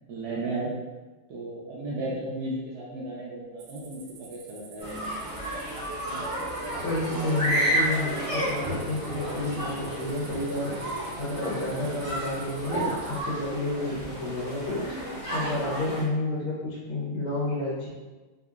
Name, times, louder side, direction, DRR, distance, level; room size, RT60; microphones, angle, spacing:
voice 1, 0.1-0.7 1.3-4.0 4.3-5.2, right 2 dB, 70° right, -6 dB, 0.9 m, -34 dB
sound 1, 3.6-13.2, right 5 dB, 90° right, 1.5 m, -50 dB
sound 2, 4.8-16.0, right 1 dB, 20° left, 1.3 m, -32 dB
sound 3, 6.7-13.5, left 1 dB, 55° left, 1.4 m, -41 dB
voice 2, 6.8-15.0 15.3-17.9, left 2 dB, 85° left, -8 dB, 1.8 m, -30 dB
3.8 x 2.8 x 2.3 m, 1.2 s
omnidirectional pair, 2.3 m